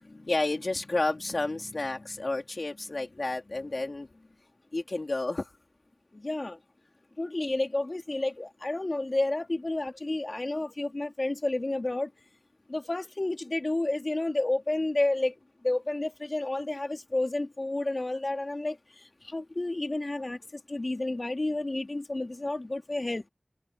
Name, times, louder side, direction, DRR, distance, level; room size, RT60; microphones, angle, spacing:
voice 1, 0.0-4.1 4.7-5.5, left 2 dB, 75° left, 2.6 m, -31 dB
voice 2, 6.1-6.6 7.2-12.1 12.7-15.3 15.6-18.8 19.2-23.2, left 2 dB, 60° left, 3.4 m, -30 dB
wide cardioid pair, 45°, 0 cm